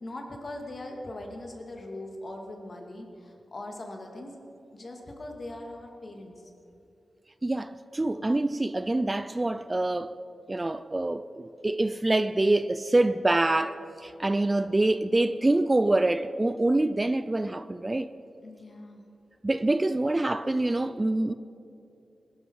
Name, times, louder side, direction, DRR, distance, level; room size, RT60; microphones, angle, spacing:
voice 1, 0.0-4.4 4.7-6.3 18.4-19.0, left 1 dB, 45° left, 2.4 m, -40 dB
voice 2, 7.4-10.1 10.5-18.1 19.4-21.3, right 2 dB, 25° right, 0.4 m, -25 dB
19.5 x 11.5 x 4.8 m
cardioid pair, 65°, 0 cm